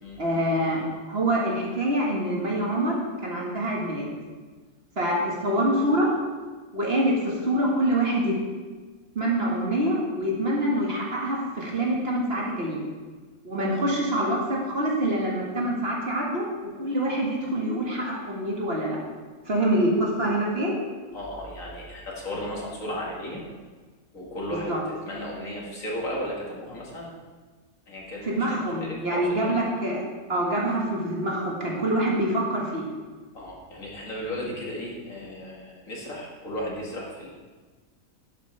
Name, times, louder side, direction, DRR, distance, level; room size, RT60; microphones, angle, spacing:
voice 1, 0.2-4.1 5.0-6.1 6.7-8.3 9.2-12.8 13.4-16.4 16.8-19.0 19.5-20.7 24.7-24.8 28.2-30.0 30.3-32.8, right 1 dB, 45° right, -3 dB, 2.0 m, -25 dB
voice 2, 21.1-23.4 24.1-27.1 27.9-29.5 33.3-37.3, equal, 65° left, -3 dB, 2.4 m, -35 dB
11.0 x 8.5 x 3.4 m, 1.4 s
omnidirectional pair, 1.5 m